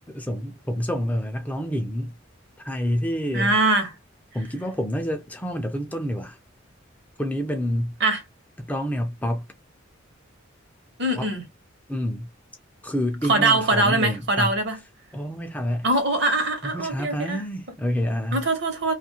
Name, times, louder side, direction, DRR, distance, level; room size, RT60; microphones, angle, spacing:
voice 1, 0.1-2.1 2.6-3.6 4.3-6.4 7.2-8.0 8.6-9.5 11.2-11.3 11.9-12.3 12.8-14.5 15.1-15.9 16.6-18.4, equal, 10° left, 0.4 m, -28 dB
voice 2, 3.3-3.9 8.0-8.2 11.0-11.4 13.3-14.8 15.8-17.4 18.3-18.9, right 2 dB, 60° right, 1.0 m, -22 dB
2.6 x 2.4 x 2.8 m
head